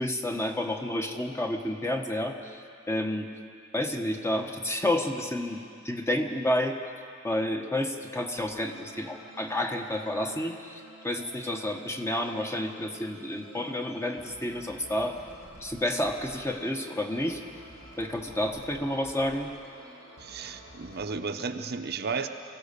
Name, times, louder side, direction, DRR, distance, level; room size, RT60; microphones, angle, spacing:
voice 1, 0.0-2.6 2.9-3.3 3.7-6.8 7.2-15.2 15.6-17.4 18.0-19.5, left 1 dB, 15° left, 3 dB, 1.3 m, -30 dB
sound 1, 8.4-21.1, right 1 dB, 80° left, 4.6 m, -50 dB
voice 2, 20.2-22.3, right 4 dB, 55° right, 6 dB, 0.8 m, -33 dB
23.5 x 16.5 x 6.8 m, 2.3 s
head